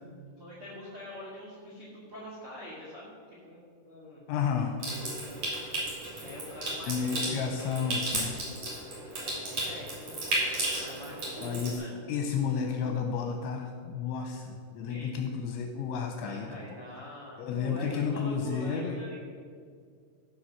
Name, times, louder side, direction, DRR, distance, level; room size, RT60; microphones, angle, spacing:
voice 1, 0.4-3.6 3.9-4.2 6.2-7.4 9.2-10.0 10.5-11.9 14.9-15.1 16.2-19.2, left 1 dB, 60° right, -4 dB, 1.5 m, -44 dB
voice 2, 4.3-4.8 6.9-8.3 11.4-11.8 12.1-16.5 17.4-19.0, left 6 dB, 80° left, 4 dB, 2.8 m, -31 dB
Water tap faucet / Sink (filling or washing) / Trickle dribble, 4.8-11.8, right 1 dB, 40° right, 3.3 m, -34 dB
14.5 x 6.2 x 5.7 m, 2.1 s
omnidirectional pair, 5.9 m